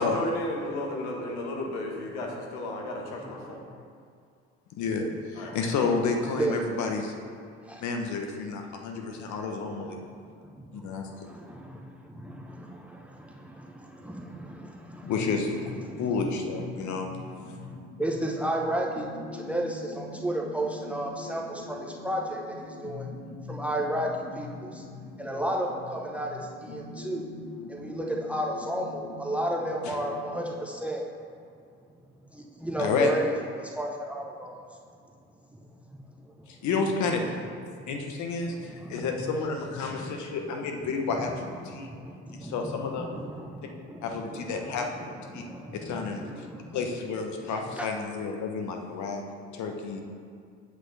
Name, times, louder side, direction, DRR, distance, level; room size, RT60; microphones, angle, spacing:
voice 1, 0.0-3.6 5.4-5.5, left 1 dB, 75° left, 0 dB, 1.4 m, -33 dB
voice 2, 4.8-7.1 7.8-10.0 10.7-11.3 15.1-15.6 16.0-17.1 29.9-30.0 32.8-33.1 36.5-37.2 37.9-41.4 41.7-41.9 42.3-43.1 44.0-45.5 45.8-46.5 46.7-49.2 49.5-50.0, left 4 dB, 55° left, 3 dB, 1.2 m, -30 dB
voice 3, 5.5-5.8 6.2-6.6 11.5-11.6 12.2-12.6 14.0-14.2 14.9-15.2 16.0-16.1 18.0-19.1 19.4-22.4 22.8-23.0 23.5-24.1 24.4-24.5 25.2-26.4 26.7-27.2 27.7-31.0 32.6-33.3 33.7-34.5 38.5-38.6 39.2-39.3 39.7-40.2 41.1-41.6 42.4-44.0 44.3-45.6 45.9-46.6 47.7-47.9, right 1 dB, 5° right, -1 dB, 1.0 m, -32 dB
sound 1, 15.0-30.5, left 3 dB, 35° left, 1.4 m, -43 dB
8.2 x 7.7 x 3.4 m, 2.3 s
hypercardioid pair, 60°, 34 cm